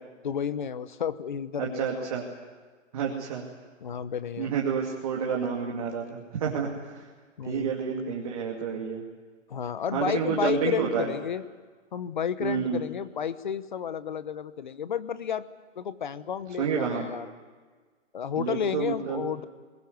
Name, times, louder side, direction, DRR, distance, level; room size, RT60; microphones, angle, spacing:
voice 1, 0.2-2.2 3.8-4.5 7.4-7.7 9.5-11.4 11.9-15.5 15.8-17.3 18.1-19.4, left 8 dB, 40° left, 15 dB, 1.0 m, -31 dB
voice 2, 1.6-2.2 2.9-3.5 4.4-7.1 7.5-9.0 9.9-11.1 12.4-12.8 16.6-17.1 18.4-19.2, right 7 dB, 30° right, -1 dB, 2.4 m, -29 dB
22.5 x 20.5 x 9.4 m, 1.5 s
hypercardioid pair, 170°, 38 cm